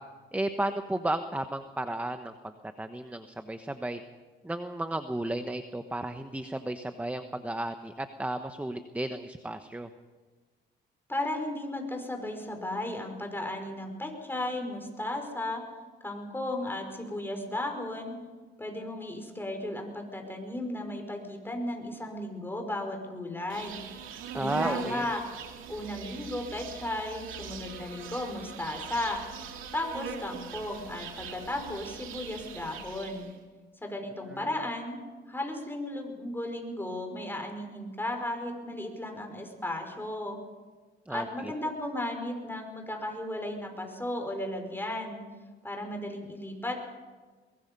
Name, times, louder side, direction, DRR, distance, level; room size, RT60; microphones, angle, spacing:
voice 1, 0.3-2.3 2.8-4.0 4.4-9.9 24.3-25.1 41.1-41.2, right 1 dB, 5° right, 8 dB, 1.2 m, -33 dB
voice 2, 11.1-15.6 16.0-18.2 18.6-23.8 24.3-25.2 25.7-29.2 29.7-33.3 33.8-35.0 35.3-40.4 41.1-45.2 45.6-46.8, left 1 dB, 10° left, 3 dB, 5.5 m, -35 dB
Insect, 23.5-33.3, right 6 dB, 90° right, 2.6 m, -41 dB
23.0 x 21.0 x 5.5 m, 1.4 s
cardioid pair, 90°, 20 cm